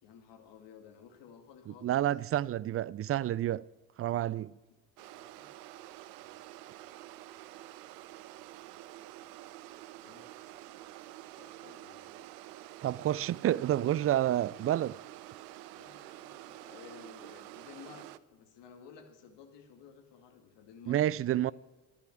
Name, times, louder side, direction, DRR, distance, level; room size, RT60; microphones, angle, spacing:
voice 1, 0.0-1.9 4.7-5.5 6.2-6.8 10.0-10.6 11.4-12.3 15.8-21.5, left 7 dB, 60° left, 2.4 m, -55 dB
voice 2, 1.8-3.6 4.0-4.5 12.8-15.0 20.9-21.5, right 12 dB, 30° right, 0.4 m, -29 dB
sound 1, 5.0-18.2, right 15 dB, 80° right, 0.7 m, -49 dB
12.0 x 11.5 x 8.4 m
hypercardioid pair, 55°, 48 cm